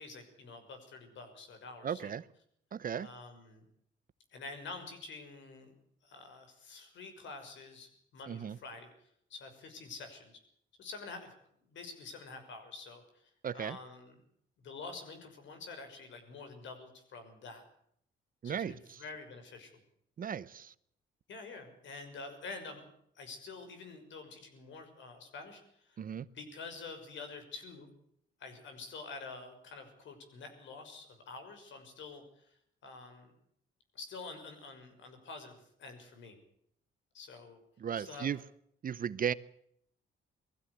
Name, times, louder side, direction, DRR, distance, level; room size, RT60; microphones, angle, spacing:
voice 1, 0.0-2.1 3.0-3.6 4.3-5.7 6.0-8.9 9.3-10.4 10.8-11.3 11.7-14.1 14.6-17.6 18.4-19.7 21.3-22.9 23.1-26.0 26.3-27.9 28.4-33.3 33.9-36.4 37.1-37.6 38.0-38.3, left 4 dB, 70° left, 7 dB, 6.1 m, -48 dB
voice 2, 1.8-2.2 2.7-3.1 8.3-8.6 13.4-13.8 18.4-19.0 20.2-20.7 26.0-26.3 37.8-38.4 38.8-39.3, right 8 dB, 45° right, 18 dB, 0.8 m, -36 dB
20.5 x 15.5 x 8.2 m, 0.70 s
cardioid pair, 90°, 20 cm